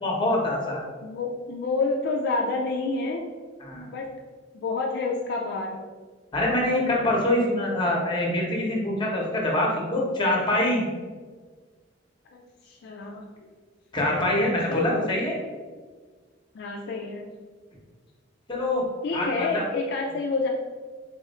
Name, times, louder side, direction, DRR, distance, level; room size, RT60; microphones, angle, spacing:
voice 1, 0.0-0.8 3.6-3.9 6.3-10.8 13.9-15.4 18.5-18.8 19.1-19.6, left 1 dB, 25° left, -2 dB, 0.8 m, -24 dB
voice 2, 1.0-3.3 3.8-4.1 4.5-5.8 12.3-13.2 14.7-15.1 16.5-17.3 19.0-20.5, left 3 dB, 55° left, 0 dB, 0.3 m, -29 dB
3.4 x 2.5 x 4.1 m, 1.5 s
head